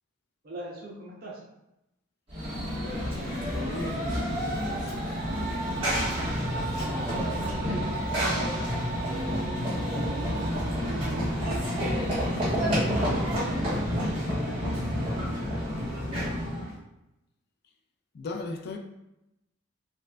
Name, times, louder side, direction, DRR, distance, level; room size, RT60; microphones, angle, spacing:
voice 1, 0.4-1.4 5.4-8.7 9.1-16.4, right 1 dB, 50° right, 0.7 m, -43 dB
Run / Train, 2.3-16.7, equal, 30° right, 1.4 m, -29 dB
voice 2, 2.7-4.9 18.1-18.8, left 3 dB, 50° left, 0.3 m, -38 dB
4.2 x 2.5 x 2.2 m
head